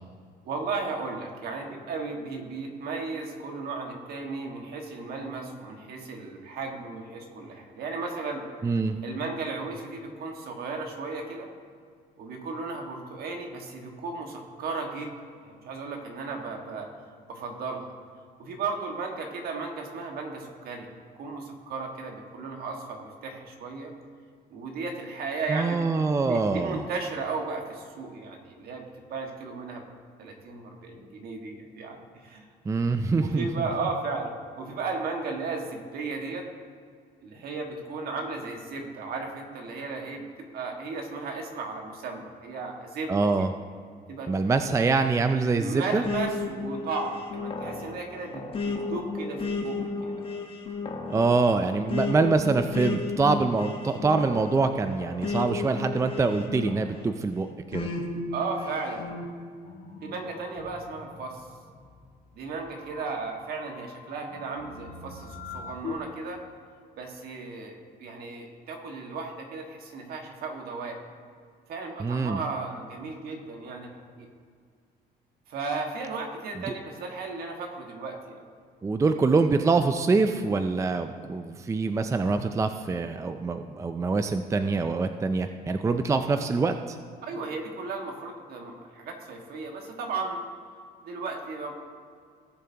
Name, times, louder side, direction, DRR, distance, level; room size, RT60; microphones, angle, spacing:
voice 1, 0.4-8.4 9.0-11.5 12.2-15.1 15.4-16.9 17.3-17.9 18.4-20.9 21.2-23.9 24.5-25.8 26.2-28.9 29.1-29.8 30.2-32.4 33.2-36.5 37.2-40.3 40.5-43.5 44.1-44.3 45.5-50.2 58.3-59.1 60.0-61.4 62.3-66.4 67.0-71.0 71.7-73.9 74.2-74.3 75.5-78.4 87.2-90.4 91.0-91.7, right 4 dB, 65° right, 2 dB, 1.8 m, -35 dB
voice 2, 8.6-9.0 25.5-26.8 32.7-33.5 43.1-43.5 44.3-46.0 51.1-57.9 72.0-72.4 78.8-87.0, right 4 dB, 20° right, 8 dB, 0.4 m, -25 dB
sound 1, 46.0-57.1 57.7-59.3, left 3 dB, 30° left, 1.3 m, -33 dB
sound 2, 59.6-66.0, left 5 dB, 60° left, 1.8 m, -44 dB
18.0 x 7.1 x 2.9 m, 2.1 s
cardioid pair, 110°, 17 cm